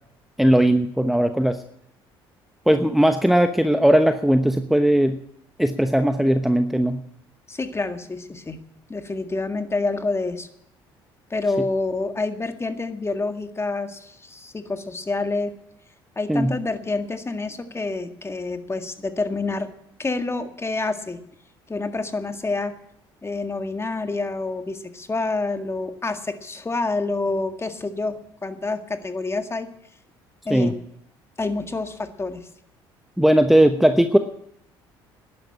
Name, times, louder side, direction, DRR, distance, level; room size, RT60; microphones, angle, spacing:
voice 1, 0.4-1.6 2.7-5.2 5.6-7.0 16.3-16.6 30.5-30.7 33.2-34.2, right 1 dB, ahead, 7 dB, 1.0 m, -18 dB
voice 2, 7.5-8.6 8.9-10.5 11.3-15.5 16.2-19.7 20.0-21.2 21.7-22.7 23.2-29.7 30.5-30.7 31.4-32.5, left 3 dB, 20° left, 7 dB, 1.9 m, -27 dB
12.0 x 10.5 x 8.7 m, 0.73 s
hypercardioid pair, 60°, 12 cm